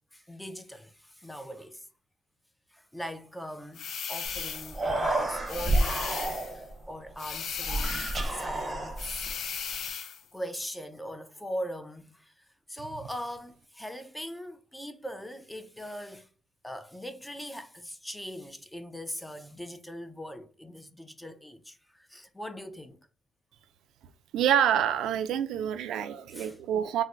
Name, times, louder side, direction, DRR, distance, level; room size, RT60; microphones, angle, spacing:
voice 1, 0.1-1.9 2.7-9.3 10.3-16.3 16.6-23.1 26.3-26.6, equal, 5° left, 0.4 m, -41 dB
sound 1, 3.7-4.8 5.5-6.6 7.2-8.4 9.0-10.2, left 7 dB, 65° left, 0.4 m, -36 dB
Human voice, 4.2-4.4 4.6-6.7 7.6-9.3, right 1 dB, 25° right, 0.7 m, -29 dB
voice 2, 24.3-27.0, right 9 dB, 80° right, 0.3 m, -27 dB
3.9 x 2.1 x 2.3 m
cardioid pair, 90°, 0 cm